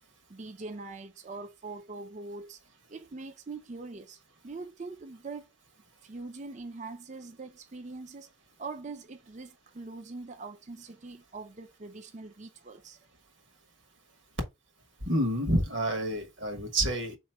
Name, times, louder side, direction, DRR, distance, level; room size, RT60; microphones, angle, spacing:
voice 1, 0.3-2.6 2.9-5.5 6.0-8.3 8.6-13.0, right 3 dB, 35° right, 0.5 m, -43 dB
voice 2, 15.0-17.2, right 1 dB, 65° right, 1.4 m, -28 dB
3.9 x 3.0 x 4.5 m
head